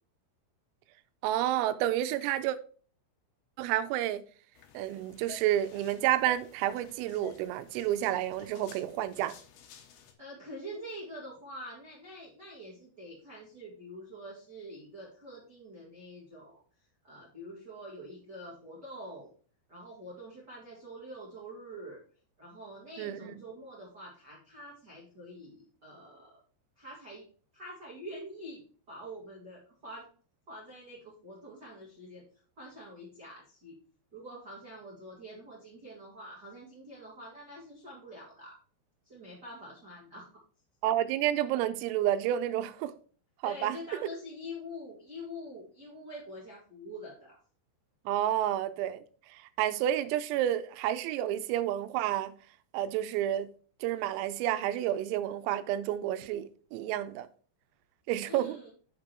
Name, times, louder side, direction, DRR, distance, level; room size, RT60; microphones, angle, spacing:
voice 1, 1.2-2.6 3.6-4.2 4.7-9.3 23.0-23.3 40.8-42.9 43.4-43.8 48.1-52.3 52.7-53.5 53.8-57.3 58.1-58.6, right 12 dB, 85° right, 3.3 m, -30 dB
sound 1, 4.5-10.1, left 10 dB, 85° left, 2.1 m, -53 dB
voice 2, 10.2-16.6 17.0-19.3 19.7-22.0 22.4-26.4 26.7-27.2 27.5-28.6 28.9-30.0 30.5-32.2 32.6-33.7 34.1-38.6 39.0-40.3 43.4-47.4 58.2-58.7, equal, 60° right, 1.0 m, -46 dB
7.3 x 5.3 x 4.4 m
omnidirectional pair, 5.9 m